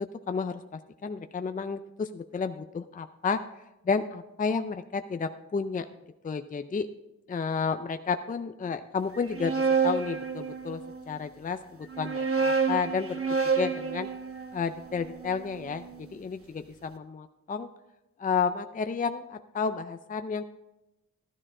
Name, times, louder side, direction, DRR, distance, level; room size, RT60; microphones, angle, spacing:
voice 1, 0.0-3.4 3.8-5.9 6.2-6.9 7.3-10.8 11.1-13.2 13.6-14.1 14.5-17.7 18.2-20.4, left 5 dB, 30° left, 9 dB, 0.4 m, -31 dB
sound 1, 9.1-11.0 11.8-16.0, right 5 dB, 45° right, 1.0 m, -29 dB
13.0 x 12.0 x 3.7 m, 0.94 s
wide cardioid pair, 140°, 30 cm